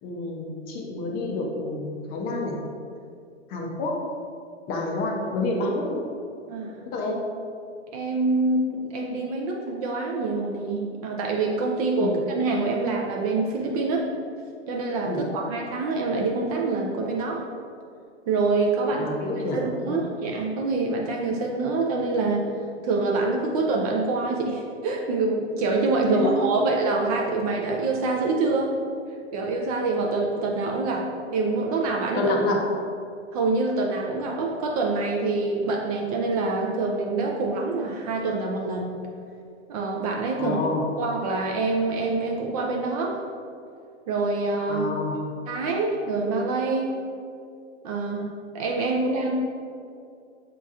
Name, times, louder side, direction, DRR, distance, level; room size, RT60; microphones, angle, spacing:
voice 1, 0.0-2.6 3.5-4.0 4.7-6.0 6.9-7.2 12.0-12.1 15.1-15.2 18.9-20.0 26.1-26.7 32.2-32.7 40.4-40.8 44.7-45.2, left 2 dB, 25° left, 0 dB, 0.5 m, -28 dB
voice 2, 6.5-6.8 7.9-14.1 14.7-17.5 18.3-19.1 19.5-22.5 22.8-28.7 29.3-32.3 33.3-39.0 39.7-40.6 41.0-43.2 44.1-44.9 45.5-47.0 47.8-48.3 48.5-49.3, right 3 dB, 35° right, 0 dB, 0.4 m, -26 dB
6.2 x 2.8 x 2.4 m, 2.4 s
hypercardioid pair, 115°, 35 cm